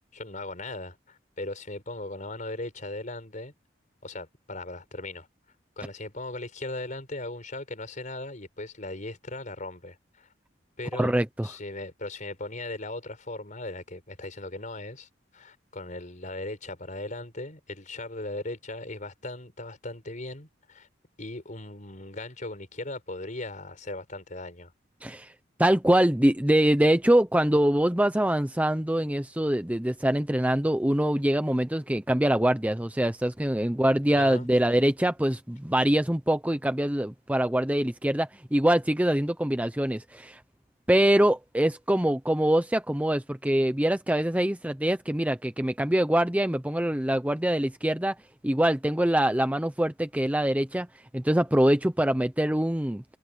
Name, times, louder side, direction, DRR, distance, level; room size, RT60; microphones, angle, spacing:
voice 1, 0.1-3.5 4.0-5.3 5.8-10.3 10.8-11.1 11.4-20.9 21.2-24.7 34.1-34.5, left 2 dB, 45° left, 5.3 m, -38 dB
voice 2, 10.9-11.5 25.0-25.3 25.6-40.4 40.9-48.2 48.4-50.9 51.1-53.0, right 1 dB, 10° right, 0.8 m, -24 dB
head